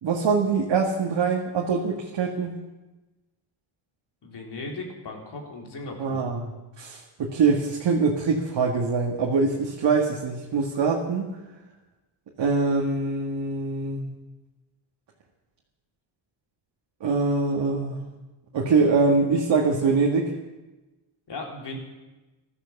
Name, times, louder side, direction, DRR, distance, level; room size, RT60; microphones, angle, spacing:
voice 1, 0.0-2.6 6.0-6.5 6.8-11.3 12.4-14.1 17.0-18.0 18.5-20.3, right 4 dB, 55° right, -1 dB, 2.1 m, -23 dB
voice 2, 4.2-6.2 21.3-21.8, left 2 dB, 50° left, 1 dB, 3.9 m, -37 dB
15.0 x 13.0 x 7.2 m, 1.1 s
cardioid pair, 105°, 50 cm